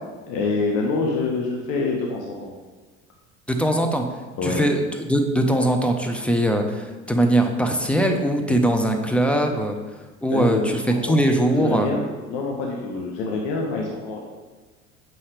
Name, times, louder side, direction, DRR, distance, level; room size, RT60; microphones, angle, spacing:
voice 1, 0.3-2.5 4.4-4.6 10.3-11.2 11.5-14.2, left 3 dB, 55° left, 0 dB, 1.0 m, -26 dB
voice 2, 3.5-4.0 4.4-9.8 10.2-11.9, right 1 dB, 5° left, 4 dB, 0.8 m, -21 dB
7.5 x 5.6 x 3.3 m, 1.3 s
figure-of-eight pair, 65°, 37 cm